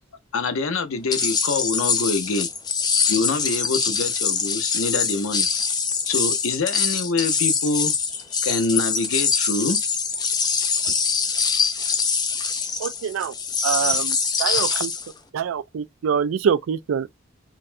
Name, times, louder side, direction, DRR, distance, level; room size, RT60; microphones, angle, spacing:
voice 1, 0.3-2.5 3.1-5.5 6.0-9.8, left 3 dB, 80° left, 0.7 m, -25 dB
sound 1, 1.1-15.1, left 5 dB, 20° left, 0.4 m, -24 dB
voice 2, 12.8-13.3 13.6-14.9 15.3-17.2, right 7 dB, 75° right, 0.3 m, -25 dB
4.0 x 2.2 x 2.5 m
head